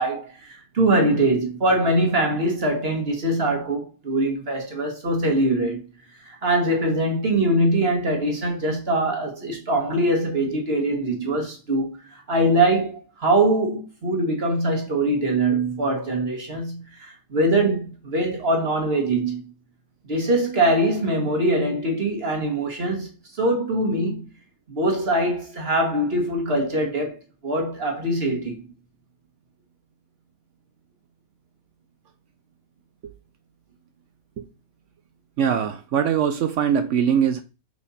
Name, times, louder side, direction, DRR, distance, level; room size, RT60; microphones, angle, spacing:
voice 1, 0.0-5.8 6.2-19.4 20.1-24.3 24.7-28.6, right 1 dB, 45° right, 1.7 m, -23 dB
voice 2, 35.4-37.4, right 8 dB, 65° right, 0.9 m, -22 dB
5.4 x 4.8 x 4.1 m
omnidirectional pair, 1.6 m